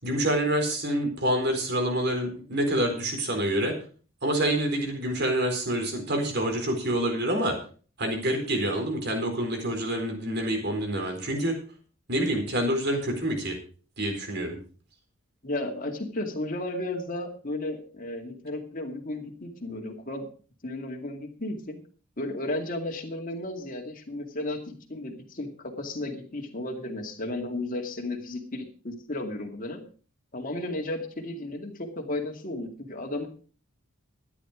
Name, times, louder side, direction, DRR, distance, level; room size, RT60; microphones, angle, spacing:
voice 1, 0.0-3.7 4.2-7.5 8.0-11.5 12.1-13.6 14.0-14.6, right 1 dB, 55° right, 3 dB, 4.2 m, -27 dB
voice 2, 15.4-20.3 20.6-21.8 22.2-29.8 30.3-33.3, left 1 dB, 40° left, 2 dB, 2.3 m, -34 dB
13.5 x 10.0 x 5.0 m, 0.40 s
head